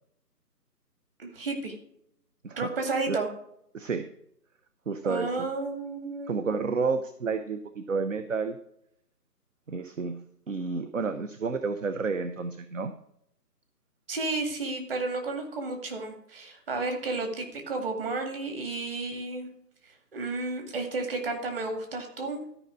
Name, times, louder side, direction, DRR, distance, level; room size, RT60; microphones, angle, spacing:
voice 1, 1.2-1.8 2.6-3.3 5.0-6.4 14.1-19.5 19.8-22.4, right 3 dB, 35° right, 3 dB, 2.2 m, -32 dB
voice 2, 3.7-4.1 4.9-5.5 6.3-8.6 9.7-12.9, right 4 dB, 50° right, 10 dB, 0.8 m, -30 dB
13.0 x 5.3 x 6.2 m, 0.73 s
figure-of-eight pair, 165°, 49 cm